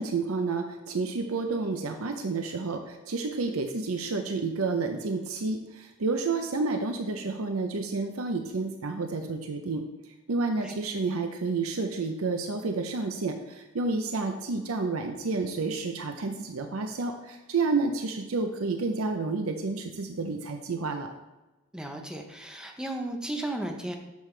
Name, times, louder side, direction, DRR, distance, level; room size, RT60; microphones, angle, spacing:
voice 1, 0.0-9.8 10.3-21.1, right 3 dB, 85° right, 5 dB, 0.7 m, -30 dB
voice 2, 21.7-23.9, right 1 dB, 5° right, 3 dB, 0.8 m, -34 dB
9.3 x 6.7 x 3.3 m, 1.1 s
head